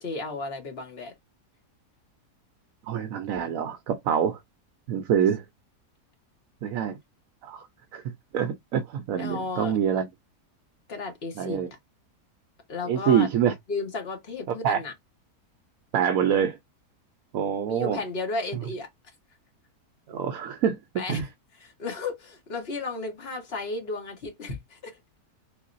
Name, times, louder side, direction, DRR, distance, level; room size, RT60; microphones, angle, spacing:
voice 1, 0.0-1.1 5.2-5.3 9.2-9.8 10.9-11.8 12.7-13.3 13.7-14.9 17.6-18.9 20.9-21.2 21.6-25.0, left 3 dB, 40° left, 1.3 m, -34 dB
voice 2, 2.9-4.4 4.9-5.4 6.6-7.0 7.4-7.7 7.9-10.0 11.4-11.7 12.9-13.5 14.6-14.8 15.9-16.6 17.3-18.0 20.1-20.8 21.1-21.2, right 8 dB, 70° right, 0.9 m, -25 dB
3.7 x 3.1 x 2.5 m
omnidirectional pair, 1.7 m